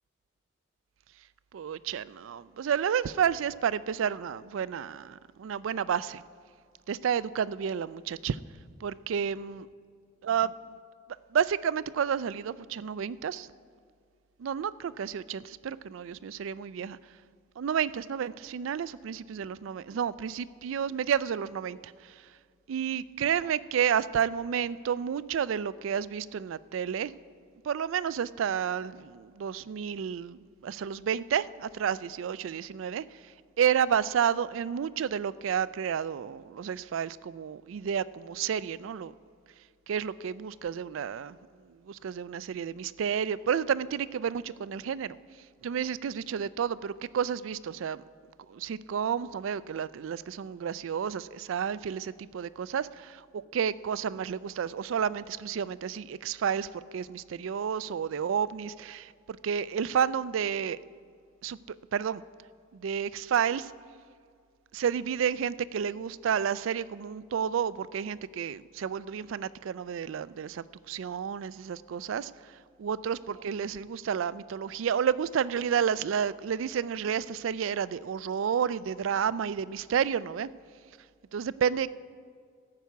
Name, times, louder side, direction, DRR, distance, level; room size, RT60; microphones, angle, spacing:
voice 1, 1.5-6.2 6.9-8.4 8.8-9.7 10.2-10.5 11.3-13.5 14.4-17.0 17.6-21.9 22.7-27.1 27.6-33.0 33.6-39.1 39.9-41.4 41.9-45.2 45.6-48.0 48.5-59.1 59.4-60.8 61.4-62.2 62.7-63.7 64.7-72.3 72.8-80.5 81.3-81.9, right 8 dB, 75° right, 18 dB, 0.3 m, -30 dB
13.5 x 8.3 x 5.8 m, 2.1 s
head